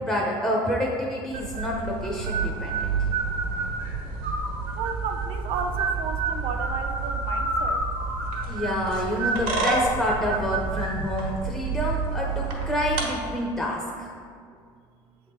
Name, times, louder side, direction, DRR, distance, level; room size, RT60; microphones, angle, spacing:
voice 1, 0.0-2.9 8.5-14.1, equal, 5° left, -3 dB, 0.7 m, -28 dB
sound 1, 1.3-13.0, right 4 dB, 80° right, 1.3 m, -28 dB
voice 2, 4.8-7.8, right 5 dB, 60° right, 7 dB, 0.5 m, -33 dB
7.2 x 3.6 x 4.3 m, 2.1 s
cardioid pair, 130°, 11 cm